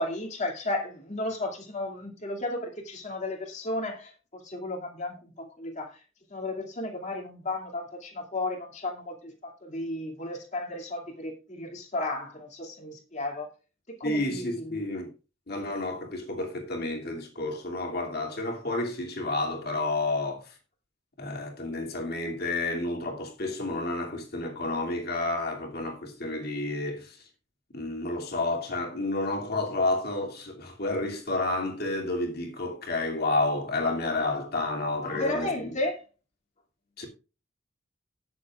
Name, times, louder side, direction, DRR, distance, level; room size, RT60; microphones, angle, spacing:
voice 1, 0.0-5.9 6.3-13.5 13.9-14.8 35.0-36.0, left 2 dB, 35° left, 2.4 m, -34 dB
voice 2, 14.0-15.1 15.5-20.5 21.2-27.2 27.7-35.7 37.0-37.1, left 2 dB, 55° left, 2.6 m, -30 dB
18.5 x 7.1 x 2.4 m
head